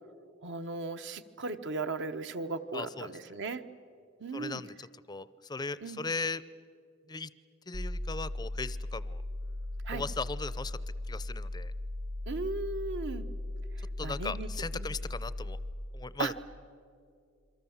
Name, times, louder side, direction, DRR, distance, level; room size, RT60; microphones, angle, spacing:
voice 1, 0.4-3.6 4.2-4.6 5.8-6.0 9.8-10.0 12.3-13.3 14.0-14.5 14.7-14.9 16.2-16.3, right 3 dB, 60° right, 9 dB, 1.0 m, -36 dB
voice 2, 2.7-3.1 4.3-6.4 7.1-7.3 7.7-9.2 9.9-10.8 11.1-11.7 14.0-15.6 15.9-16.3, left 4 dB, 20° left, 17 dB, 0.5 m, -38 dB
sound 1, 7.7-15.7, left 1 dB, 90° right, 3.4 m, -37 dB
28.0 x 23.0 x 7.2 m, 2.4 s
head